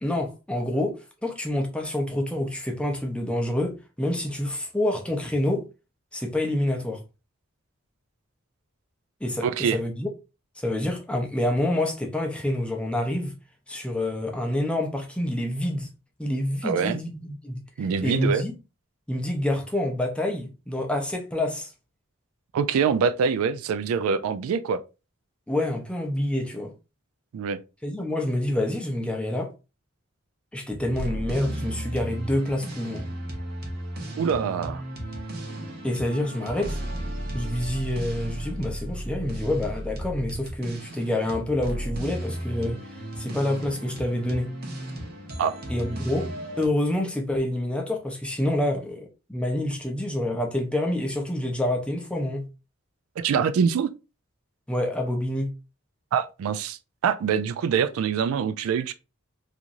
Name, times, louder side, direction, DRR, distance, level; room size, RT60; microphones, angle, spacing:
voice 1, 0.0-5.7 6.1-7.0 9.2-10.1 10.6-13.3 13.7-15.9 16.2-17.6 18.0-18.5 19.1-21.7 25.5-26.7 27.8-29.5 30.5-33.1 35.8-36.8 37.3-42.8 43.2-44.5 45.7-46.3 46.6-52.5 54.7-55.5, left 1 dB, 5° left, 0.5 m, -27 dB
voice 2, 9.4-9.8 16.6-17.0 17.8-18.4 22.5-24.8 27.3-27.6 34.1-34.8 45.4-45.6 53.2-53.9 56.1-58.9, right 6 dB, 90° right, 0.3 m, -24 dB
sound 1, 30.7-46.7, right 1 dB, 50° right, 0.8 m, -34 dB
3.0 x 2.5 x 2.5 m
head